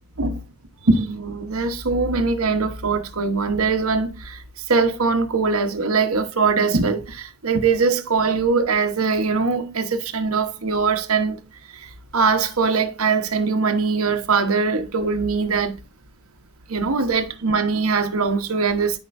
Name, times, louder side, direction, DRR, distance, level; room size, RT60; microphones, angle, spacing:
voice 1, 0.8-11.4 11.7-15.8 16.7-19.0, right 4 dB, 80° right, 1.1 m, -22 dB
12.5 x 5.3 x 2.6 m
head